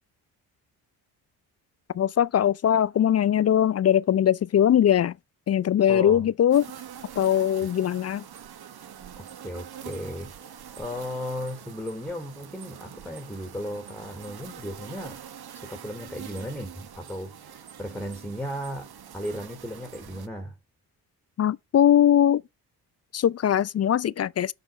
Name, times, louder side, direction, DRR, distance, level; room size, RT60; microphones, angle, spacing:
voice 1, 1.9-5.2 5.5-6.7 7.2-8.2 21.4-22.4 23.1-24.5, left 10 dB, 35° left, 0.4 m, -21 dB
voice 2, 5.9-6.2 9.2-15.2 15.5-20.6, equal, 5° left, 2.9 m, -36 dB
sound 1, 6.5-20.3, right 9 dB, 50° right, 1.4 m, -44 dB
7.9 x 6.1 x 5.2 m
hypercardioid pair, 50°, 47 cm